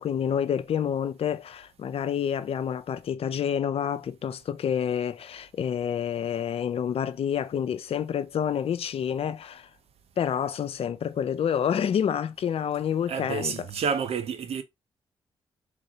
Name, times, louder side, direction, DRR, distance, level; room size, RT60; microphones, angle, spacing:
voice 1, 0.0-9.7 10.2-13.5, left 8 dB, 60° left, 0.5 m, -28 dB
voice 2, 13.1-14.6, right 6 dB, 65° right, 0.7 m, -29 dB
3.6 x 3.0 x 2.7 m
supercardioid pair, 45°, 11 cm